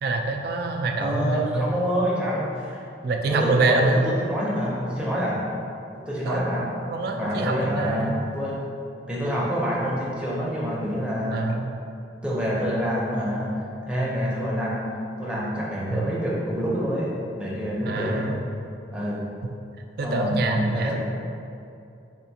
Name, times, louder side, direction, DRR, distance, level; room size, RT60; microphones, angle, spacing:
voice 1, 0.0-1.7 3.0-4.0 6.2-8.3 11.3-11.7 15.9-16.1 17.8-18.4 20.0-21.0, right 3 dB, 60° right, 3 dB, 0.3 m, -26 dB
voice 2, 1.0-2.8 3.3-3.8 4.2-5.4 6.1-6.6 7.1-8.6 9.1-11.4 12.2-13.5 13.9-14.8 15.2-17.1 17.4-18.3 18.9-19.2 20.0-21.0, equal, 5° right, -6 dB, 0.6 m, -27 dB
4.3 x 2.5 x 2.7 m, 2.6 s
head